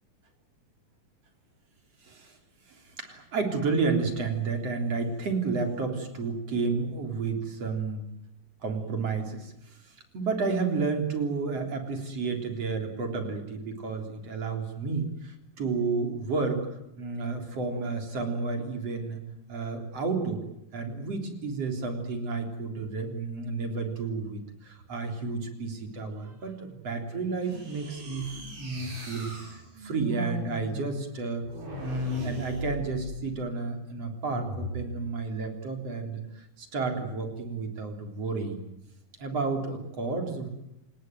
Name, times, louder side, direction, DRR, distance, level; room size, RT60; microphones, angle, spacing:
voice 1, 2.0-2.4 2.7-8.1 8.6-16.7 17.0-19.2 19.5-20.4 20.7-28.3 28.6-31.5 31.8-38.7 39.2-40.5, right 4 dB, 50° right, 4 dB, 4.6 m, -31 dB
sound 1, 27.4-33.4 34.2-34.9, right 1 dB, 75° right, 8.9 m, -39 dB
28.0 x 19.5 x 9.3 m, 0.85 s
omnidirectional pair, 3.8 m